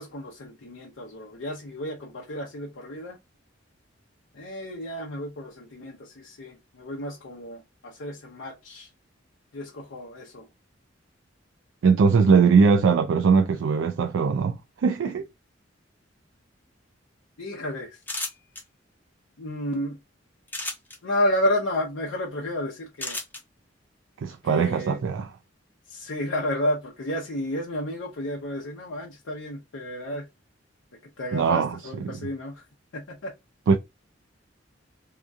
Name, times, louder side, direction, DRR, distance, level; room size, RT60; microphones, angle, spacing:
voice 1, 0.0-3.2 4.3-8.9 9.5-10.4 17.4-18.0 19.4-20.0 21.0-23.2 24.4-25.0 25.9-30.3 31.2-32.6 32.9-33.3, left 1 dB, 85° left, 0.7 m, -31 dB
voice 2, 11.8-15.3 24.2-25.3 31.3-32.2 33.7-33.8, right 5 dB, 85° right, 0.3 m, -21 dB
sound 1, 18.0-18.6 20.5-21.0 23.0-23.4, left 2 dB, 10° left, 0.6 m, -32 dB
2.8 x 2.3 x 2.5 m
head